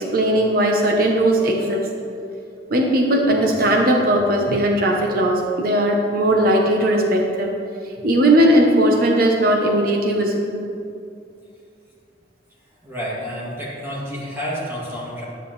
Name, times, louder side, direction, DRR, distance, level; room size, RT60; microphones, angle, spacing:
voice 1, 0.0-1.9 2.7-7.6 8.0-10.6, right 1 dB, 55° right, 1 dB, 0.9 m, -18 dB
voice 2, 12.8-15.2, equal, 15° right, -7 dB, 2.5 m, -29 dB
10.5 x 9.8 x 3.2 m, 2.5 s
head